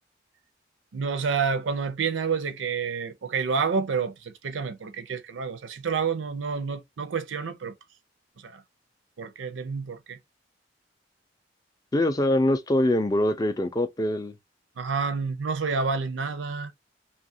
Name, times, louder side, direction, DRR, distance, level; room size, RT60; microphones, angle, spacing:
voice 1, 0.9-7.7 8.4-8.6 9.2-10.2 14.8-16.7, right 5 dB, 85° right, 0.5 m, -29 dB
voice 2, 11.9-14.4, left 1 dB, 20° left, 0.3 m, -23 dB
2.7 x 2.3 x 2.6 m
head